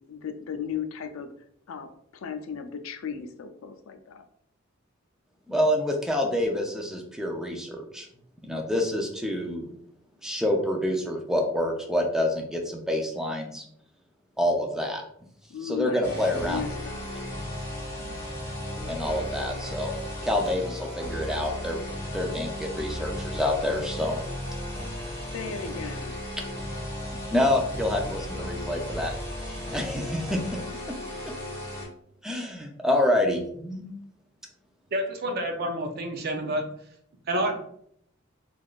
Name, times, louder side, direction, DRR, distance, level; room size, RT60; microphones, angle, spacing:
voice 1, 0.1-1.3 1.7-4.3 15.5-17.0 25.3-26.2, left 7 dB, 85° left, 7 dB, 0.4 m, -36 dB
voice 2, 5.5-8.1 8.4-9.7 10.2-13.7 14.4-15.0 15.6-16.6 18.0-18.2 18.8-19.9 20.2-21.8 22.1-24.2 27.3-29.1 29.4-30.4 32.2-33.9, left 1 dB, 5° right, 1 dB, 0.4 m, -27 dB
sound 1, 16.0-31.9, left 1 dB, 15° left, 1.0 m, -35 dB
voice 3, 34.9-36.7 37.3-37.6, right 1 dB, 50° right, 4 dB, 0.6 m, -28 dB
3.4 x 2.4 x 2.4 m, 0.68 s
head